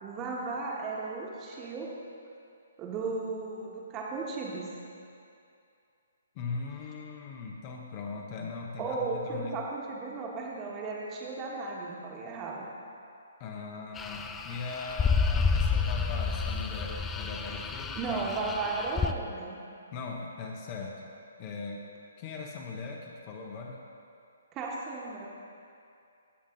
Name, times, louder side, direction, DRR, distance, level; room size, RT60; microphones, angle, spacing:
voice 1, 0.0-1.9 2.8-4.7 8.8-12.7 18.0-19.6 24.5-25.3, right 3 dB, 25° right, -3 dB, 1.5 m, -35 dB
voice 2, 6.3-9.6 13.4-18.3 19.9-21.1 21.4-21.8 22.2-23.8, left 4 dB, 35° left, 0 dB, 1.0 m, -39 dB
sound 1, 14.0-19.1, left 5 dB, 10° left, 0.4 m, -30 dB
15.5 x 5.3 x 3.9 m, 2.5 s
figure-of-eight pair, 135°, 0 cm